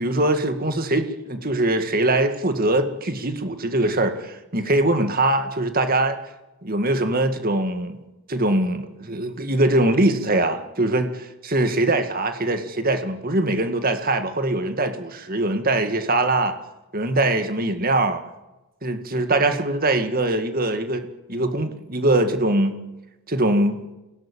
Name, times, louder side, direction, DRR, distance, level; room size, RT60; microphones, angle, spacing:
voice 1, 0.0-6.2 6.6-8.0 8.3-16.6 16.9-18.2 18.8-22.8 23.3-23.8, right 2 dB, 40° right, 7 dB, 2.0 m, -22 dB
27.0 x 17.5 x 8.7 m, 1.0 s
head